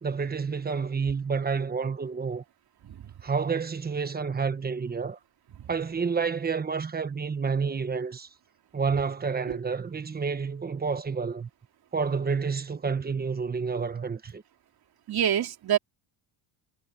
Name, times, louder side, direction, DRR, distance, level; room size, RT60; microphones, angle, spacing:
voice 1, 0.0-2.4 3.2-5.2 5.7-8.3 8.7-11.5 11.9-14.4, right 5 dB, 20° right, 1.1 m, -29 dB
voice 2, 15.1-15.8, right 10 dB, 45° right, 3.3 m, -27 dB
cardioid pair, 140°, 49 cm